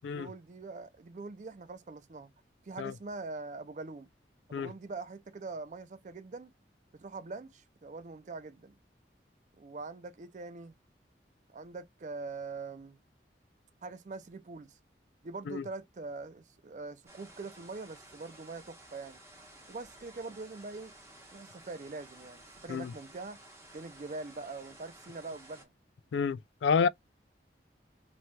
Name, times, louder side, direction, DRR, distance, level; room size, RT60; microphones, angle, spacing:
voice 1, 0.0-2.3 2.6-4.1 4.5-6.5 6.9-8.8 9.6-10.7 11.5-13.0 13.8-14.8 15.2-19.2 19.7-20.9 21.3-23.4 23.7-25.7, right 3 dB, 40° right, 0.4 m, -43 dB
sound 1, 17.1-25.6, right 1 dB, 15° right, 0.8 m, -54 dB
voice 2, 26.1-26.9, left 6 dB, 80° left, 0.3 m, -29 dB
3.0 x 2.7 x 2.2 m
head